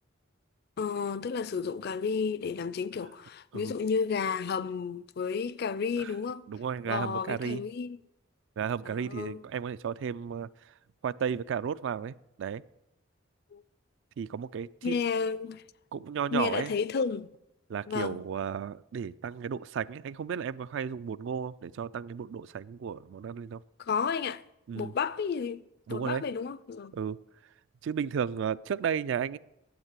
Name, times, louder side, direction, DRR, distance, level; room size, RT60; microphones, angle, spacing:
voice 1, 0.8-6.5 6.8-8.0 8.9-9.4 13.5-13.6 14.8-15.6 16.3-17.3 17.9-18.2 23.8-24.4 24.7-25.6 25.9-27.0, left 5 dB, 55° left, 0.4 m, -32 dB
voice 2, 6.5-7.6 8.6-10.7 11.0-12.6 14.2-14.9 15.9-16.7 17.7-23.6 24.7-24.9 25.9-26.2 26.9-27.2 27.8-29.4, right 7 dB, 65° right, 0.3 m, -33 dB
9.5 x 8.0 x 7.4 m
head